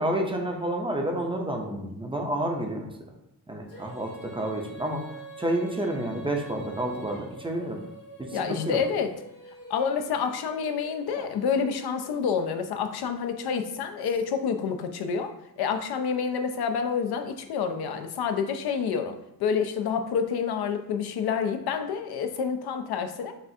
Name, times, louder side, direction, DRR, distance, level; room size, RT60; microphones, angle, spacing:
voice 1, 0.0-2.9 3.5-5.0 5.4-7.8 8.2-8.8 11.2-11.3, right 1 dB, 15° right, 1 dB, 0.5 m, -29 dB
Female singing, 3.7-12.8, right 3 dB, 60° left, 1.0 m, -46 dB
voice 2, 8.3-9.1 9.7-15.3 15.6-23.3, left 6 dB, 85° left, 7 dB, 0.5 m, -28 dB
5.5 x 2.4 x 2.7 m, 0.85 s
wide cardioid pair, 130°, 37 cm